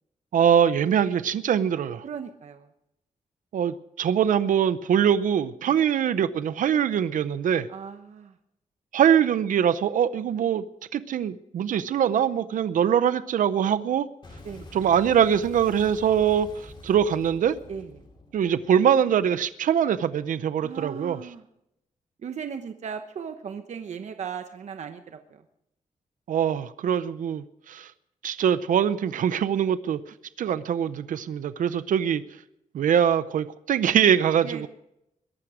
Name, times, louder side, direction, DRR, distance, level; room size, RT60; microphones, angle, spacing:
voice 1, 0.3-2.0 3.5-7.7 8.9-10.6 10.9-14.1 14.7-17.5 18.3-21.2 26.3-27.9 28.2-30.0 30.4-32.2 32.7-34.7, right 8 dB, 80° right, 14 dB, 0.7 m, -23 dB
voice 2, 2.0-2.7 5.6-5.8 7.7-8.4 14.4-14.7 17.7-18.0 20.6-21.4 22.2-25.4 34.4-34.7, right 7 dB, 60° right, 7 dB, 1.0 m, -37 dB
Boom, 14.2-19.4, left 2 dB, 35° left, 4.3 m, -46 dB
21.5 x 12.0 x 4.9 m, 0.81 s
wide cardioid pair, 160°, 13 cm